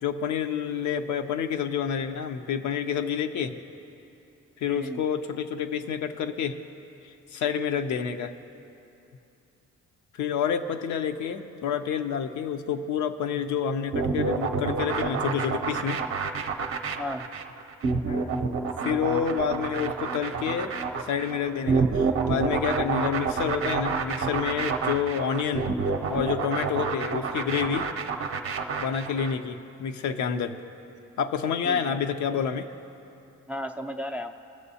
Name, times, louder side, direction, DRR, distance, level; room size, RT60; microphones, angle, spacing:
voice 1, 0.0-3.6 4.6-6.6 7.3-8.3 10.1-16.0 18.1-18.5 18.8-20.7 21.1-25.7 26.1-27.9 28.8-30.6 31.2-32.7, left 7 dB, 70° left, 8 dB, 0.6 m, -28 dB
voice 2, 4.7-5.0 17.0-17.2 31.6-32.0 33.5-34.4, equal, 5° right, 7 dB, 0.3 m, -34 dB
sound 1, 13.9-29.4, right 5 dB, 50° right, 0.7 m, -28 dB
19.0 x 6.8 x 2.8 m, 2.8 s
cardioid pair, 90°, 30 cm